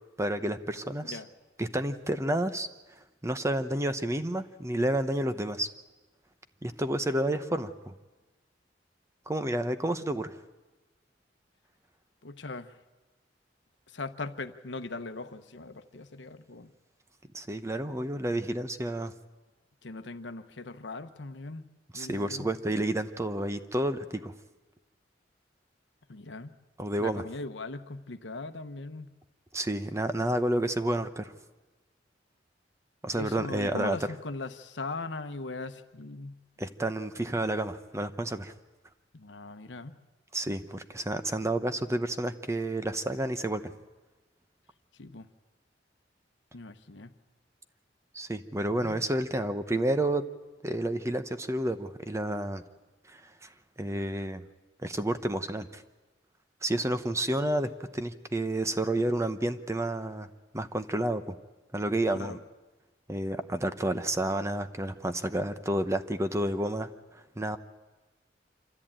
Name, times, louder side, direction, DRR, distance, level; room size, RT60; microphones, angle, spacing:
voice 1, 0.2-1.2 1.6-2.7 3.2-5.7 6.6-7.9 9.3-10.4 17.3-19.1 21.9-24.3 26.8-27.2 29.5-31.3 33.0-34.0 36.6-38.5 40.3-43.7 48.1-50.2 50.6-52.6 53.1-53.5 53.8-54.4 54.8-55.8 56.6-60.3 60.5-61.4 61.7-62.4 63.1-66.9 67.4-67.6, right 1 dB, 15° right, 10 dB, 0.9 m, -30 dB
voice 2, 12.2-12.8 13.9-16.7 19.8-21.6 21.9-22.5 26.1-26.5 27.0-29.1 33.1-36.3 39.1-39.9 45.0-45.3 46.5-47.1 48.7-49.1 62.2-62.4, left 3 dB, 70° left, 9 dB, 1.0 m, -39 dB
26.0 x 13.5 x 8.9 m, 1.2 s
head